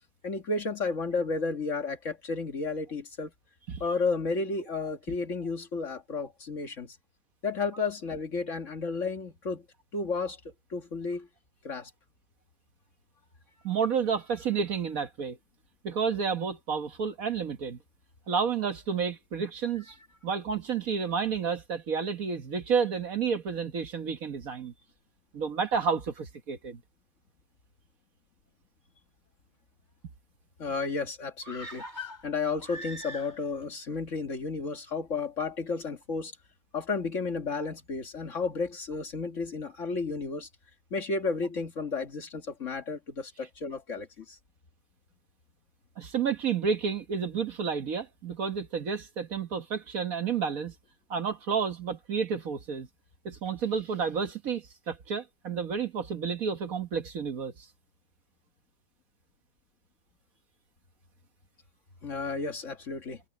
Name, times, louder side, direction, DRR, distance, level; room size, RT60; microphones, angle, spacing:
voice 1, 0.2-3.3 3.8-7.0 7.4-9.7 9.9-10.4 10.7-11.3 11.6-11.9 30.6-36.3 36.7-40.5 40.9-44.4 62.0-63.2, left 4 dB, 45° left, 1.9 m, -32 dB
voice 2, 13.6-15.4 15.8-17.8 18.3-19.9 20.2-24.7 25.3-26.8 46.0-50.7 51.1-52.9 53.2-57.7, right 6 dB, 55° right, 1.6 m, -30 dB
sound 1, 31.4-33.7 33.9-34.0, left 1 dB, 25° left, 3.2 m, -42 dB
omnidirectional pair, 1.9 m